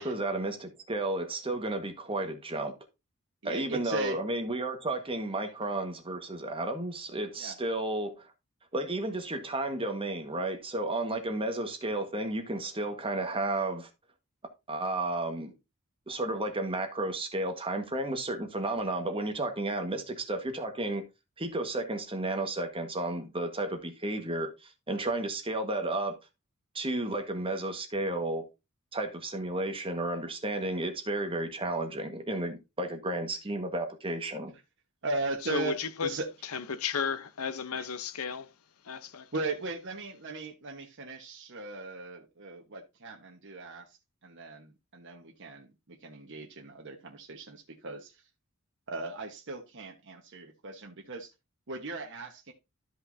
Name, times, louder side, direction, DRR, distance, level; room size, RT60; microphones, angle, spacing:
voice 1, 0.0-2.7 3.4-8.3 8.7-13.9 14.7-15.5 16.1-21.0 21.4-26.2 26.7-28.4 28.9-34.5, right 2 dB, 25° right, 1.5 m, -32 dB
voice 2, 3.4-4.2 7.4-7.5 35.0-36.3 37.7-37.9 39.3-44.0 44.2-48.2 48.9-51.3 51.7-52.5, right 3 dB, 60° right, 1.3 m, -38 dB
voice 3, 35.5-36.1 36.5-38.5 38.8-39.3, left 6 dB, 85° left, 0.8 m, -33 dB
13.0 x 5.5 x 2.7 m
head